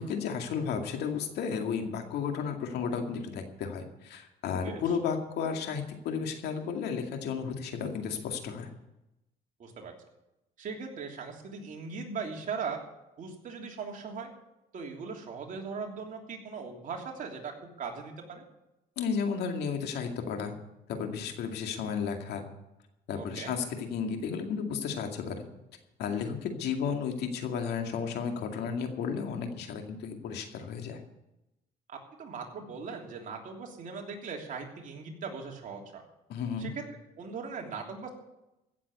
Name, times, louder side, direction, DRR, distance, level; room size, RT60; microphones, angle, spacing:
voice 1, 0.0-8.7 19.0-20.6 20.9-22.4 23.1-23.7 23.9-25.4 26.0-31.0 36.3-36.7, left 6 dB, 75° left, 4 dB, 2.3 m, -33 dB
voice 2, 9.6-9.9 10.6-12.8 13.2-14.3 14.7-18.4 23.2-23.5 31.9-36.0 36.6-36.9 37.2-38.1, right 5 dB, 50° right, 1 dB, 3.2 m, -39 dB
16.0 x 7.5 x 8.2 m, 0.91 s
cardioid pair, 110°, 17 cm